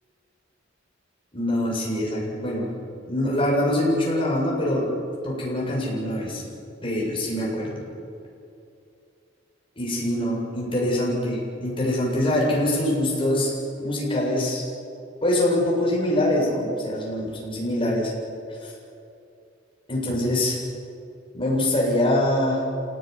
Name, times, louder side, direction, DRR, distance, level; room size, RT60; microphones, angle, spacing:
voice 1, 1.3-2.7 3.0-4.9 5.2-6.4 6.8-7.8 9.8-13.5 13.8-14.6 15.2-18.1 18.6-18.7 19.9-20.6 21.3-22.6, left 1 dB, 30° left, -4 dB, 7.7 m, -24 dB
27.5 x 18.5 x 9.8 m, 2.7 s
head